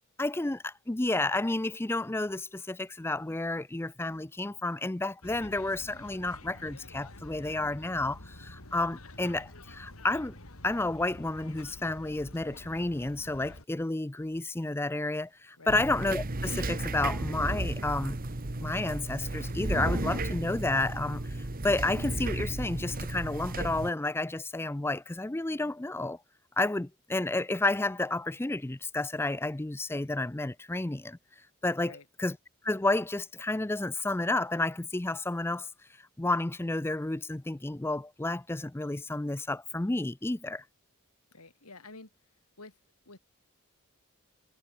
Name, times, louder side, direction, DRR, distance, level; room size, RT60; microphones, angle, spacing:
voice 1, 0.2-10.3 10.6-18.2 18.6-26.2 26.6-31.2 31.6-32.4 32.6-35.7 36.0-40.6, left 2 dB, 10° left, 0.4 m, -31 dB
sound 1, 5.2-13.6, left 1 dB, 70° left, 3.8 m, -48 dB
sound 2, 15.7-23.9, right 2 dB, 40° right, 1.4 m, -34 dB
voice 2, 41.3-42.1 42.6-42.8 43.1-43.2, left 3 dB, 90° left, 6.0 m, -49 dB
head